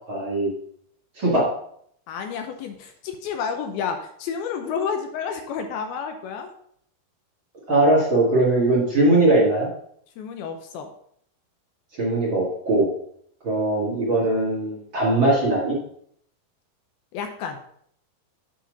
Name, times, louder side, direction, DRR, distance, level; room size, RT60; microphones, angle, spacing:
voice 1, 0.1-0.5 1.2-1.5 7.7-9.7 12.0-12.9 13.4-15.8, right 2 dB, 40° right, -6 dB, 2.2 m, -20 dB
voice 2, 2.1-6.5 10.2-10.9 17.1-17.6, left 6 dB, 80° left, 5 dB, 2.5 m, -30 dB
8.4 x 4.3 x 5.2 m, 0.66 s
omnidirectional pair, 4.6 m